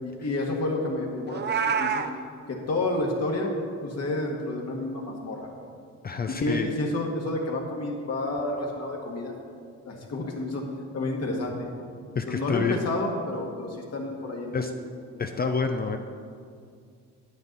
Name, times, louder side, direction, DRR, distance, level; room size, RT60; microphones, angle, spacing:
voice 1, 0.0-2.0 2.5-3.5 3.8-5.5 6.3-9.3 9.9-10.7 10.9-11.7 12.3-14.8, left 2 dB, 55° left, 0 dB, 1.8 m, -30 dB
Meow, 1.3-2.1, right 6 dB, 35° right, 0.6 m, -26 dB
voice 2, 6.0-6.7 12.2-12.9 14.5-14.7 15.2-16.0, left 5 dB, 30° left, 6 dB, 0.5 m, -28 dB
9.5 x 8.9 x 4.0 m, 2.3 s
cardioid pair, 90°, 30 cm